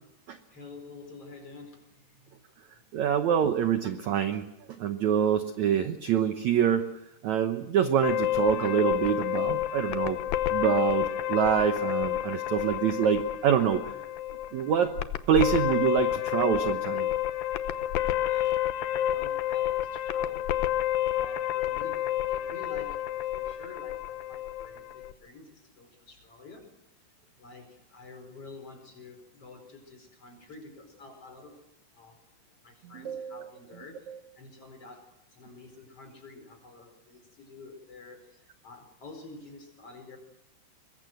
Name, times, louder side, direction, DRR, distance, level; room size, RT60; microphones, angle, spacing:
voice 1, 0.5-2.4 2.7-2.9 18.1-18.7 18.9-20.7 21.1-26.7 27.4-31.6 31.9-32.2 32.5-40.2, left 3 dB, 35° left, 6 dB, 5.4 m, -49 dB
voice 2, 2.9-4.5 4.8-6.9 7.2-10.2 10.5-13.9 14.5-14.9 15.3-17.1 32.9-33.4 34.1-34.2, right 9 dB, 75° right, 8 dB, 1.7 m, -26 dB
sound 1, 8.0-25.1, left 12 dB, 70° left, 2.4 m, -29 dB
24.5 x 21.5 x 7.8 m, 0.91 s
omnidirectional pair, 4.7 m